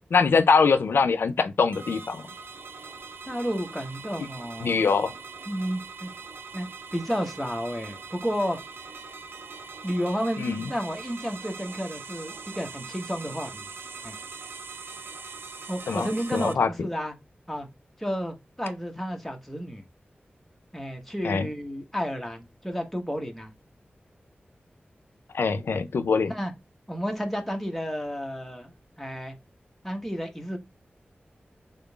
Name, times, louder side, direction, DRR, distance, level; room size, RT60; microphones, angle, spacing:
voice 1, 0.1-2.2 4.6-5.1 10.4-10.6 15.9-16.1 16.3-16.7 21.2-21.5 25.3-26.3, left 5 dB, 85° left, 0.4 m, -23 dB
sound 1, 1.7-16.5, right 5 dB, 90° right, 0.5 m, -42 dB
voice 2, 3.2-4.9 5.5-6.1 6.5-8.6 9.8-13.7 14.0-14.2 15.7-17.1 17.5-17.7 18.0-19.8 20.7-23.5 26.2-26.5 26.9-29.3 29.8-30.6, equal, 5° left, 1.0 m, -31 dB
3.7 x 3.7 x 2.3 m
wide cardioid pair, 100°, 4 cm